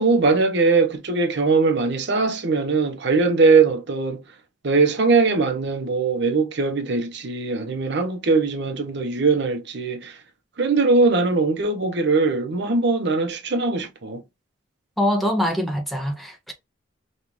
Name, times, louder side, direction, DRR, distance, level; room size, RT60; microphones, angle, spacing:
voice 1, 0.0-4.2 4.6-10.2 10.6-14.2, right 4 dB, 60° right, 0.7 m, -20 dB
voice 2, 15.0-16.5, equal, ahead, 0.5 m, -23 dB
5.3 x 2.4 x 3.0 m
head